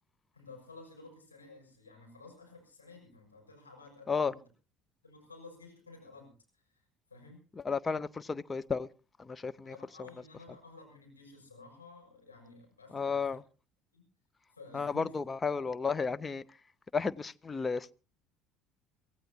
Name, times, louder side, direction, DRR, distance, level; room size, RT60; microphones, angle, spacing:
voice 1, 0.3-4.4 5.0-7.4 9.6-13.4 13.9-14.1 14.5-15.1, left 3 dB, 85° left, 6.5 m, -53 dB
voice 2, 7.6-8.9 9.2-9.8 12.9-13.4 14.7-16.4 16.9-17.9, left 5 dB, 25° left, 0.7 m, -33 dB
25.0 x 16.5 x 2.8 m
figure-of-eight pair, 60°, 0 cm